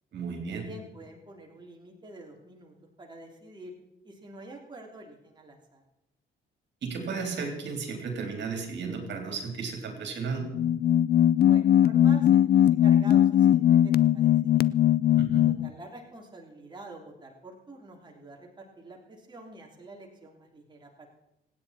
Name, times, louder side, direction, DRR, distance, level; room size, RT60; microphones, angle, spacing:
voice 1, 0.1-0.7 6.8-10.4 15.2-15.4, right 5 dB, 65° right, 2 dB, 3.7 m, -34 dB
voice 2, 0.6-3.7 4.0-5.8 11.4-14.7 15.4-21.1, right 2 dB, 20° right, 0 dB, 3.2 m, -47 dB
sound 1, 10.4-15.7, left 11 dB, 50° left, 0.5 m, -20 dB
26.5 x 9.5 x 4.3 m, 0.88 s
cardioid pair, 90°, 20 cm